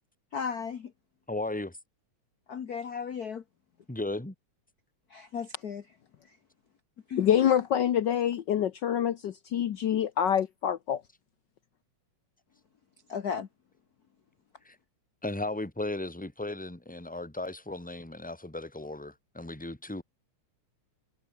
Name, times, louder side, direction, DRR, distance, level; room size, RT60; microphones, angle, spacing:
voice 1, 0.3-0.9 2.5-3.4 5.1-5.8 6.3-6.4 7.1-7.3 13.1-13.5, left 6 dB, 50° left, 1.1 m, -35 dB
voice 2, 1.3-1.8 3.9-4.3 14.7-14.8 15.2-20.0, left 2 dB, 5° left, 2.1 m, -36 dB
voice 3, 7.2-11.0, left 9 dB, 80° left, 1.0 m, -26 dB
omnidirectional pair, 3.3 m